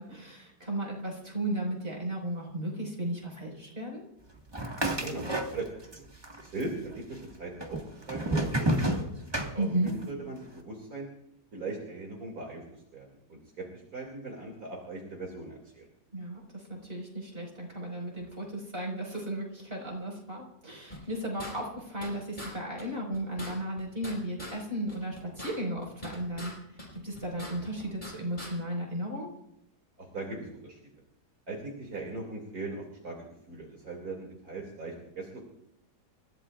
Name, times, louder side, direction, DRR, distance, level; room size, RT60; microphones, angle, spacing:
voice 1, 0.0-4.0 9.6-9.9 16.1-29.3, right 1 dB, 30° right, -1 dB, 5.5 m, -35 dB
sound 1, 4.5-6.0 6.2-7.0 7.6-10.1, right 1 dB, 15° right, 1.6 m, -30 dB
voice 2, 5.0-6.1 6.4-9.1 9.5-11.1 11.5-15.9 30.0-30.8 31.5-33.2 33.5-35.4, right 2 dB, 55° right, -1 dB, 3.1 m, -39 dB
sound 2, 20.9-22.1 22.4-22.5 22.8-22.9 23.1-24.6 24.9-26.5 26.8-28.1 28.4-28.5, left 1 dB, 25° left, 5.7 m, -42 dB
29.5 x 16.0 x 2.5 m, 0.79 s
omnidirectional pair, 1.9 m